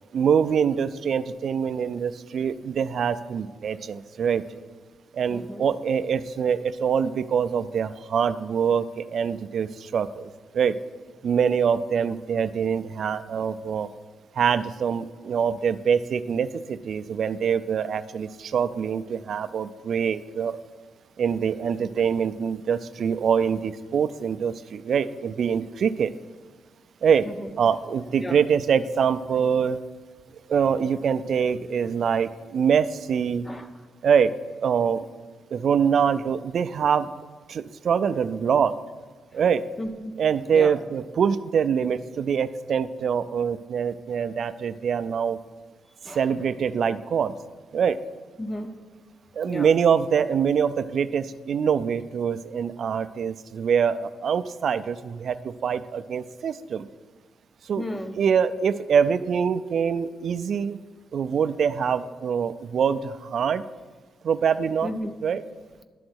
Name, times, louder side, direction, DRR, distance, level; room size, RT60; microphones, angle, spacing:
voice 1, 0.1-4.6 5.1-10.8 11.2-13.9 14.4-20.6 21.2-26.1 27.0-27.3 27.6-29.8 30.5-33.5 34.0-34.3 34.6-35.1 35.5-37.1 37.5-38.7 39.3-39.6 40.2-45.4 46.1-47.3 47.7-48.0 49.4-56.9 57.6-57.9 58.2-60.8 61.1-63.6 64.2-64.9 65.2-65.4, right 7 dB, 55° right, 12 dB, 0.3 m, -24 dB
voice 2, 5.3-5.7 27.2-27.5 28.2-28.4 33.4-33.7 39.8-40.2 40.5-40.7 46.0-46.2 48.4-48.7 49.4-49.7 57.7-58.2 64.8-65.1, left 1 dB, 10° left, 8 dB, 0.6 m, -33 dB
11.5 x 3.8 x 6.3 m, 1.4 s
wide cardioid pair, 150°, 0 cm